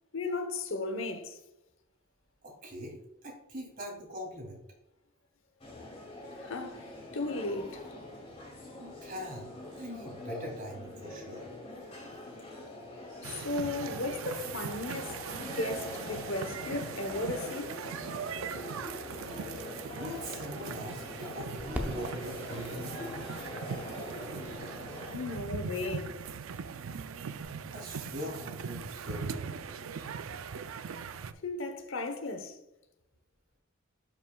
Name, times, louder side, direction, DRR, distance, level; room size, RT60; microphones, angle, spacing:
voice 1, 0.1-1.4 6.4-7.9 13.2-17.8 25.1-26.1 31.4-32.6, left 2 dB, 65° left, 0.9 m, -35 dB
voice 2, 2.4-4.6 8.8-11.4 19.9-23.1 27.7-30.1, equal, 40° right, 2.7 m, -42 dB
sound 1, 5.6-25.2, left 1 dB, 30° left, 2.3 m, -44 dB
sound 2, 13.2-31.3, right 6 dB, 75° right, 0.4 m, -40 dB
sound 3, 21.5-27.4, equal, 10° right, 0.7 m, -46 dB
11.5 x 5.8 x 2.3 m
head